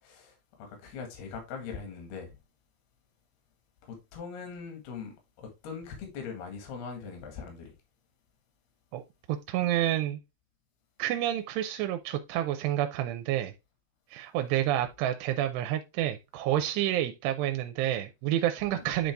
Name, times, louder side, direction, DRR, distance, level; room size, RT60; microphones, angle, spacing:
voice 1, 0.0-2.4 3.8-7.8 18.7-18.8, left 5 dB, 75° left, 3.7 m, -41 dB
voice 2, 9.3-10.2 11.0-13.5 14.1-19.1, right 12 dB, 85° right, 2.7 m, -29 dB
9.8 x 3.9 x 3.4 m
omnidirectional pair, 4.8 m